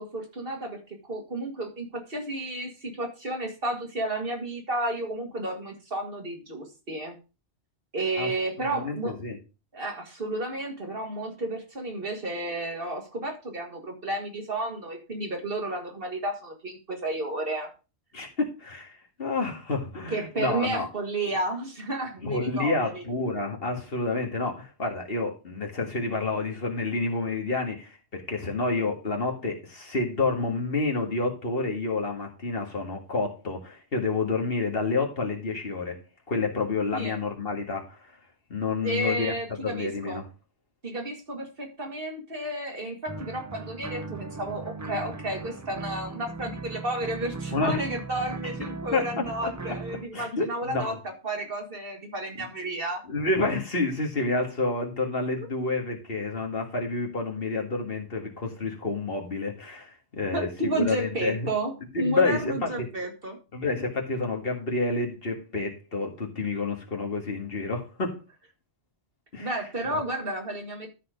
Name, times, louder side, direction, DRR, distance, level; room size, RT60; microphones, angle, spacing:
voice 1, 0.0-7.2 7.9-9.2 9.7-17.7 20.1-23.0 36.9-37.1 38.8-40.2 40.8-53.0 60.3-63.4 69.4-70.9, right 1 dB, 55° right, 2 dB, 2.2 m, -32 dB
voice 2, 8.6-9.4 18.1-20.9 22.2-36.0 36.3-38.1 38.5-39.3 39.6-40.2 47.5-47.8 48.9-49.8 50.1-51.0 52.4-52.5 53.1-61.5 61.9-62.9 63.5-68.2 69.3-69.6 69.9-70.0, left 3 dB, 60° left, 1 dB, 2.1 m, -29 dB
sound 1, 43.1-50.0, right 3 dB, 25° right, 0.4 m, -38 dB
12.5 x 4.3 x 5.1 m, 0.31 s
omnidirectional pair, 1.1 m